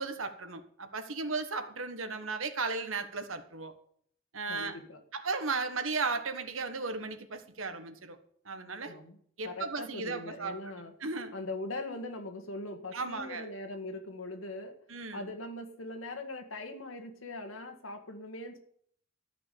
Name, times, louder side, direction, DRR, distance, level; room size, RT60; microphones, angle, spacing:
voice 1, 0.0-3.7 4.3-4.8 5.1-8.2 8.4-9.0 9.4-10.6 11.0-11.3 12.9-13.5 14.9-15.2, right 4 dB, 85° right, 8 dB, 1.5 m, -35 dB
voice 2, 4.5-5.0 8.9-9.2 9.4-10.9 11.3-14.8 15.1-18.6, left 2 dB, 90° left, 5 dB, 2.0 m, -41 dB
14.0 x 6.1 x 8.5 m, 0.64 s
head